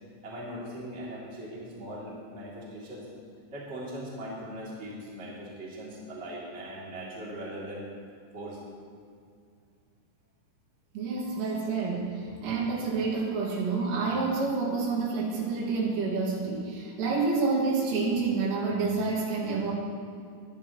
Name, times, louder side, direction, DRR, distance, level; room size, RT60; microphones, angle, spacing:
voice 1, 0.2-3.1 3.5-7.9 8.3-8.6 11.3-11.4, equal, 20° right, -6 dB, 2.0 m, -40 dB
voice 2, 10.9-19.7, right 4 dB, 80° right, -3 dB, 4.7 m, -28 dB
21.0 x 10.5 x 3.1 m, 2.3 s
omnidirectional pair, 5.6 m